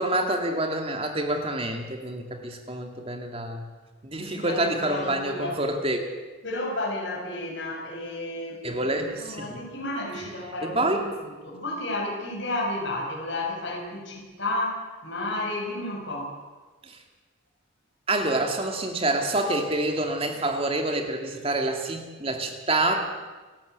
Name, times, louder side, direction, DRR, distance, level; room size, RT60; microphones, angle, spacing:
voice 1, 0.0-3.6 4.0-6.0 8.6-9.6 10.6-11.1 16.8-17.0 18.1-23.0, right 2 dB, 30° right, 4 dB, 2.4 m, -27 dB
voice 2, 4.2-5.6 6.4-16.3, left 1 dB, 65° left, -1 dB, 7.0 m, -32 dB
30.0 x 12.0 x 8.3 m, 1.3 s
head